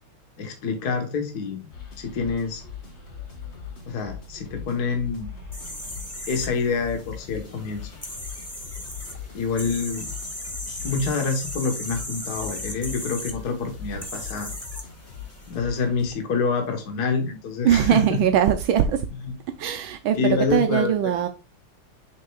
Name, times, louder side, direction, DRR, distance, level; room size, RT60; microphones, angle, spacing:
voice 1, 0.4-1.6 2.0-2.6 3.9-5.3 6.3-7.9 9.3-10.1 10.7-14.5 15.5-18.2 19.2-19.3 20.2-20.9, left 5 dB, 50° left, 1.7 m, -27 dB
sound 1, 1.7-16.1, left 7 dB, 35° left, 1.6 m, -40 dB
sound 2, 5.5-15.5, left 1 dB, 10° left, 0.7 m, -37 dB
voice 2, 17.6-19.1 19.6-21.3, right 9 dB, 80° right, 1.4 m, -21 dB
6.6 x 6.5 x 2.3 m
omnidirectional pair, 2.3 m